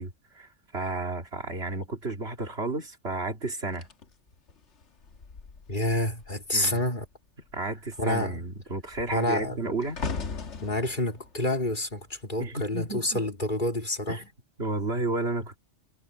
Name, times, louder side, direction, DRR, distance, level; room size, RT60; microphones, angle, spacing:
voice 1, 0.0-3.9 6.5-6.8 7.5-10.0 12.4-13.2 14.1-14.3 14.6-15.6, right 2 dB, 55° right, 2.6 m, -32 dB
sound 1, 3.7-6.5 6.8-7.1 7.4-12.8 13.5-13.8, left 4 dB, 70° left, 1.7 m, -40 dB
voice 2, 5.7-7.1 8.0-8.4 9.1-9.6 10.6-14.2, left 1 dB, 40° left, 3.6 m, -28 dB
omnidirectional pair, 1.3 m